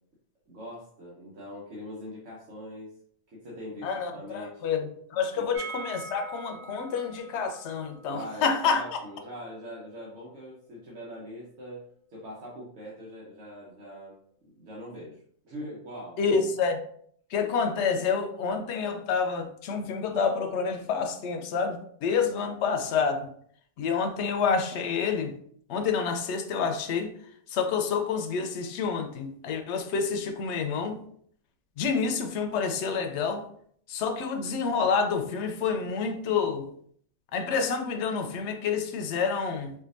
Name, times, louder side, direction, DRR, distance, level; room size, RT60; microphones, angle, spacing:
voice 1, 0.5-3.0 3.3-4.7 8.0-11.8 12.1-16.2 22.2-22.4, equal, 85° right, -6 dB, 1.2 m, -42 dB
voice 2, 3.8-8.8 16.2-16.8 17.3-23.3 23.8-25.3 25.7-27.1 27.5-31.0 31.8-33.4 33.9-36.7 37.3-39.7, left 5 dB, 75° left, 6 dB, 0.8 m, -28 dB
sound 1, 5.5-11.3 11.6-11.7 11.9-12.0, right 4 dB, 35° right, 0.7 m, -45 dB
4.5 x 2.5 x 2.5 m, 0.62 s
omnidirectional pair, 1.2 m